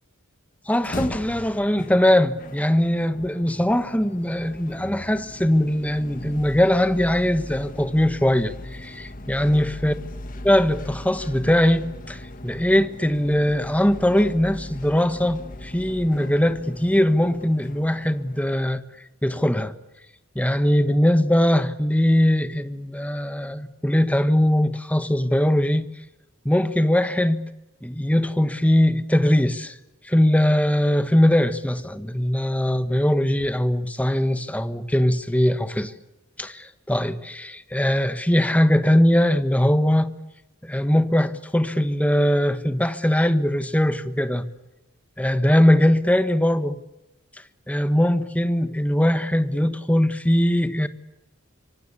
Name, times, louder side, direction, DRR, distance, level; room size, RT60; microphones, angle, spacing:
sound 1, 0.7-18.8, left 1 dB, 40° left, 1.5 m, -39 dB
voice 1, 0.7-9.9 10.4-18.8 19.2-19.7 20.3-25.9 26.4-27.4 27.8-29.7 30.0-35.9 36.4-40.1 40.6-44.5 45.2-46.8 47.7-50.9, left 1 dB, 5° left, 1.3 m, -21 dB
25.5 x 24.5 x 8.4 m
head